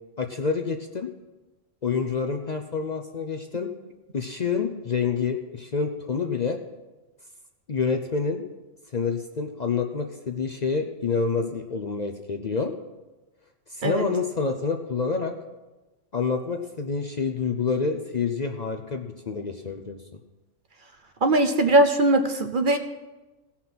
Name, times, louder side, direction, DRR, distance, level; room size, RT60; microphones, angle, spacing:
voice 1, 0.2-1.1 1.8-3.7 4.1-6.6 7.7-8.4 8.9-12.7 13.7-15.3 16.1-20.0, left 5 dB, 45° left, 5 dB, 0.6 m, -27 dB
voice 2, 21.2-22.8, right 2 dB, 50° right, 7 dB, 0.9 m, -20 dB
17.0 x 5.8 x 5.9 m, 1.1 s
omnidirectional pair, 1.3 m